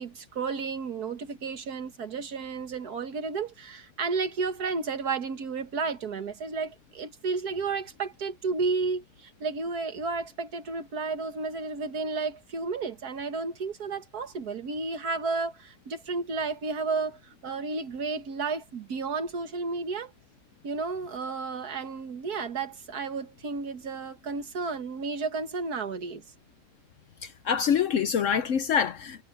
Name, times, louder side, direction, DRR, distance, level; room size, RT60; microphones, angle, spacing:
voice 1, 0.0-20.1 20.6-26.2, right 4 dB, 65° right, 2.0 m, -32 dB
voice 2, 27.2-29.2, left 7 dB, 60° left, 0.9 m, -26 dB
omnidirectional pair, 1.8 m